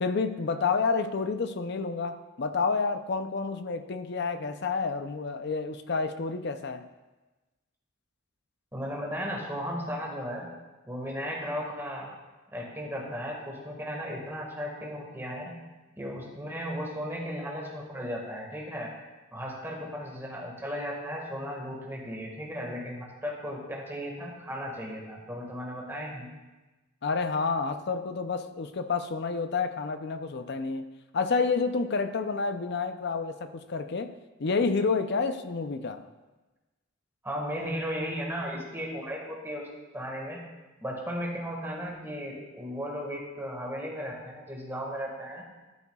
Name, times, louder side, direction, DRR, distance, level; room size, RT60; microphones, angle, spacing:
voice 1, 0.0-6.8 27.0-30.8 31.1-34.1 34.4-36.1, left 4 dB, 55° left, 9 dB, 0.5 m, -29 dB
voice 2, 8.7-10.5 10.9-12.1 12.5-15.5 16.0-18.9 19.3-26.3 37.2-39.6 39.9-40.4 40.8-45.4, equal, 10° right, -2 dB, 1.7 m, -35 dB
12.0 x 9.8 x 2.3 m, 1.2 s
head